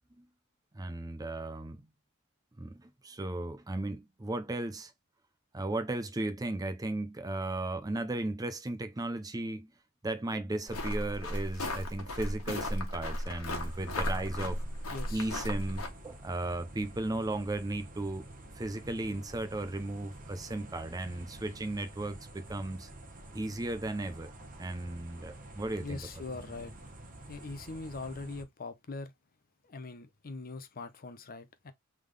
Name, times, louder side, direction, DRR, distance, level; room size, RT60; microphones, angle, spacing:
voice 1, 0.7-1.9 2.6-4.9 5.5-9.7 10.0-14.6 15.1-18.3 18.5-22.9 23.3-24.3 24.6-26.0, right 2 dB, 15° right, 0.5 m, -35 dB
sound 1, 10.7-15.9, left 1 dB, 85° left, 1.4 m, -35 dB
sound 2, 13.6-28.4, right 1 dB, 40° right, 1.1 m, -49 dB
voice 2, 14.9-15.3 25.8-26.7 27.3-29.1 29.6-31.7, left 3 dB, 45° left, 0.7 m, -42 dB
3.7 x 3.5 x 3.2 m
head